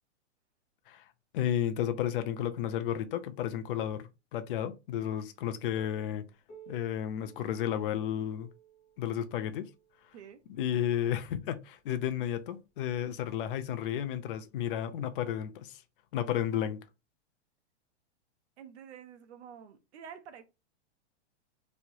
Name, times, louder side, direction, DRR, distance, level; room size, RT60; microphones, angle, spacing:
voice 1, 1.3-6.3 6.7-8.5 9.0-9.7 10.6-15.8 16.1-16.8, left 10 dB, 50° left, 0.5 m, -32 dB
Piano, 6.5-11.8 12.7-12.8 13.3-13.4 14.1-14.2 15.3-15.4, right 8 dB, 20° left, 0.7 m, -58 dB
voice 2, 18.6-20.5, right 8 dB, 65° right, 0.8 m, -49 dB
3.1 x 2.8 x 2.6 m
supercardioid pair, 160°, 36 cm